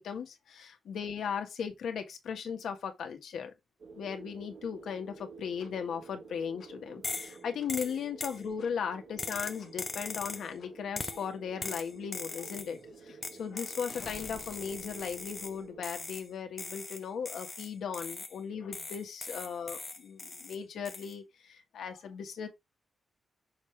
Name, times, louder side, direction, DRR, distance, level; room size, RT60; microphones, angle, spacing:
voice 1, 0.0-3.5 3.9-22.5, left 7 dB, 85° left, 1.5 m, -37 dB
sound 1, 3.8-15.9, right 4 dB, 55° right, 1.3 m, -51 dB
sound 2, 5.6-5.7 6.6-6.7 7.6-7.7 8.6-8.7 9.6-9.7 10.6-10.7 11.6-11.7 12.3-16.2, left 5 dB, 55° left, 1.3 m, -53 dB
sound 3, 7.0-7.4 7.7-8.4 9.2-10.5 11.0-11.3 11.6-12.7 13.2-15.6 15.8-16.3 16.6-18.4 18.7-20.6 20.9-21.1, left 3 dB, 25° left, 0.6 m, -40 dB
6.5 x 4.8 x 3.3 m
wide cardioid pair, 165°, 0 cm